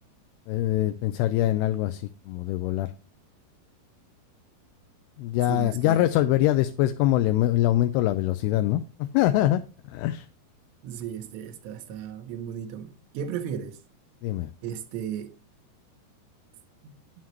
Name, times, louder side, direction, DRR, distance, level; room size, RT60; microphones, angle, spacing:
voice 1, 0.5-2.9 5.2-9.6 9.9-10.3 14.2-14.5, left 14 dB, 80° left, 2.5 m, -24 dB
voice 2, 5.5-6.1 10.8-13.8 14.6-15.3 16.8-16.9, right 8 dB, 85° right, 3.1 m, -35 dB
9.4 x 7.3 x 3.0 m
omnidirectional pair, 4.9 m